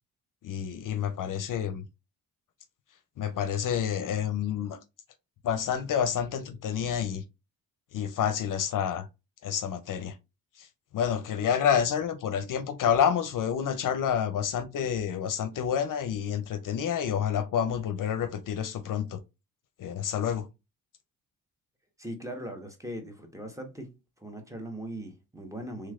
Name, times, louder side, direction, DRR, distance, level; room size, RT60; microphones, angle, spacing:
voice 1, 0.4-1.8 3.2-4.8 5.4-7.2 7.9-9.1 9.4-10.2 10.6-10.7 10.9-19.2 19.8-20.5, left 8 dB, 60° left, 0.6 m, -28 dB
voice 2, 22.0-23.9 24.2-25.9, right 1 dB, 10° right, 1.1 m, -39 dB
3.3 x 3.1 x 2.4 m
cardioid pair, 65°, 36 cm